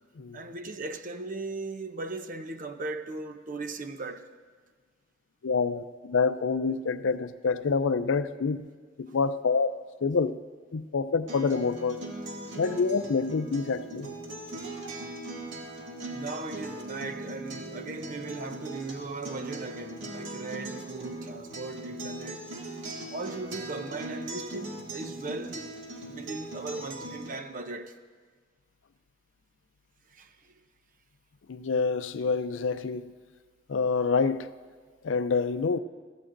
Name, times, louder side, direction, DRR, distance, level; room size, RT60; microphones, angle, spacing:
voice 1, 0.3-4.3 16.1-22.5 23.1-25.8 26.1-28.0 30.1-30.5, right 3 dB, 45° right, 0.7 m, -38 dB
voice 2, 5.4-8.7 9.0-9.7 10.0-10.4 10.7-12.0 12.6-14.1 31.5-33.1 33.7-34.5 35.0-35.8, left 4 dB, 90° left, 0.5 m, -27 dB
Acoustic guitar, 11.3-27.3, right 2 dB, 75° right, 1.9 m, -40 dB
22.0 x 15.5 x 2.6 m
head